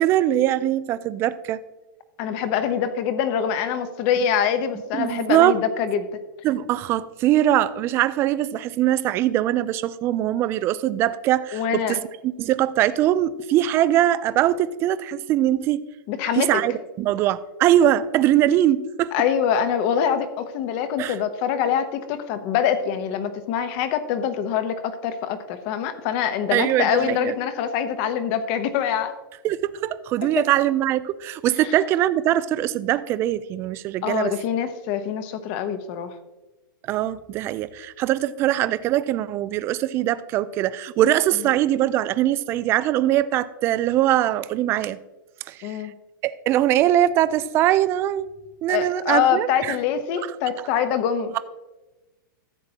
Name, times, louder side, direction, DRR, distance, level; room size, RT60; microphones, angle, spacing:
voice 1, 0.0-1.6 5.0-5.6 6.4-12.0 12.4-15.8 16.4-19.1 21.0-21.1 26.5-27.3 29.4-34.3 36.9-45.0 45.5-45.8 46.2-48.3 48.6-49.8, right 12 dB, 20° right, 15 dB, 0.3 m, -22 dB
voice 2, 2.2-6.2 11.5-12.1 16.1-16.6 19.1-29.1 30.4-30.5 31.6-31.7 34.0-36.1 41.3-41.5 45.6-46.0 48.7-51.4, left 8 dB, 35° left, 10 dB, 0.9 m, -24 dB
14.5 x 7.5 x 2.9 m, 1.1 s
hypercardioid pair, 155°, 11 cm